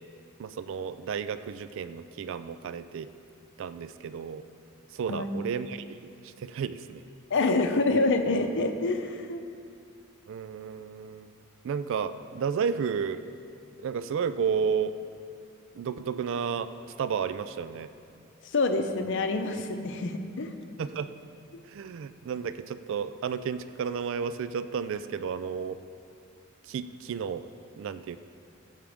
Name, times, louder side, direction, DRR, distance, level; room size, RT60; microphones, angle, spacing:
voice 1, 0.4-3.1 3.6-4.4 4.9-7.0 10.3-11.3 11.6-13.2 13.8-15.0 15.7-16.7 17.0-17.9 20.8-21.1 21.7-25.8 26.6-27.4 27.8-28.2, right 6 dB, 65° right, 12 dB, 0.3 m, -32 dB
voice 2, 7.3-9.4 18.4-20.5, left 3 dB, 60° left, 7 dB, 0.7 m, -27 dB
14.5 x 7.4 x 3.5 m, 2.4 s
head